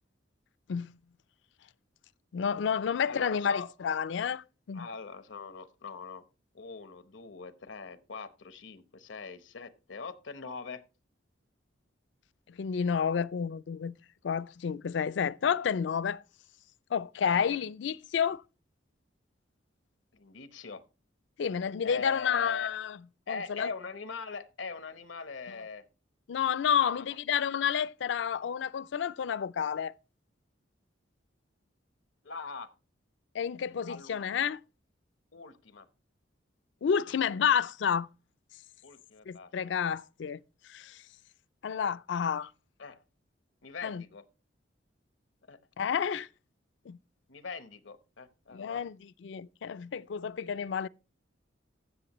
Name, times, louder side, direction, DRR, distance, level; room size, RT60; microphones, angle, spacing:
voice 1, 2.3-4.9 12.5-13.9 14.2-16.2 16.9-18.4 21.4-23.0 23.3-23.7 25.5-25.6 26.3-29.9 33.3-34.6 36.8-38.1 39.3-40.4 40.7-41.0 41.6-42.5 43.8-44.0 45.8-46.3 46.9-47.0 48.5-50.9, left 7 dB, 70° left, 0.4 m, -30 dB
voice 2, 3.0-3.7 4.7-6.2 6.5-10.8 17.2-17.4 20.1-20.8 21.8-22.7 23.3-25.8 26.8-27.0 32.2-32.7 33.9-34.2 35.3-35.9 38.8-39.5 42.8-43.0 43.6-44.2 45.5-45.6 47.3-48.8, left 4 dB, 85° left, 0.9 m, -41 dB
15.5 x 6.6 x 3.0 m
head